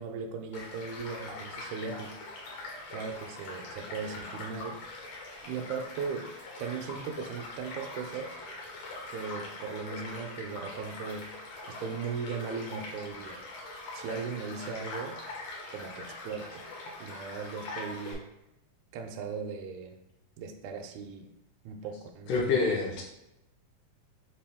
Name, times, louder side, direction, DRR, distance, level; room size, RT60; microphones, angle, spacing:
voice 1, 0.0-2.2 2.9-4.8 5.4-6.3 6.6-8.4 9.1-11.3 11.7-13.4 13.9-15.2 15.7-16.7 17.0-18.3 18.9-20.0 20.4-21.3 21.7-22.6, right 5 dB, 80° right, 4 dB, 1.8 m, -38 dB
Child speech kid speaking / Stream / Car passing by, 0.5-18.1, left 2 dB, 65° left, 1.9 m, -42 dB
voice 2, 22.3-23.0, left 4 dB, 85° left, -2 dB, 2.3 m, -26 dB
6.0 x 2.5 x 3.5 m, 0.87 s
omnidirectional pair, 3.5 m